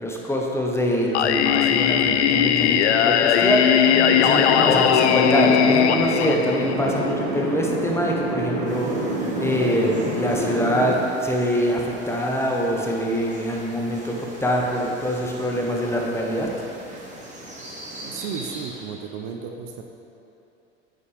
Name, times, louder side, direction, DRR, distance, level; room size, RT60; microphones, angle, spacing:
voice 1, 0.0-9.1 9.4-16.5, equal, 5° left, -1 dB, 1.0 m, -24 dB
Singing, 1.1-7.1, left 9 dB, 70° left, 0.5 m, -19 dB
sound 1, 3.8-10.9, right 1 dB, 70° right, 1.6 m, -27 dB
sound 2, 8.7-19.1, right 1 dB, 20° right, 1.6 m, -41 dB
voice 2, 18.0-19.8, right 6 dB, 50° right, 4 dB, 0.6 m, -34 dB
9.0 x 5.9 x 3.4 m, 2.9 s
figure-of-eight pair, 80°, 35 cm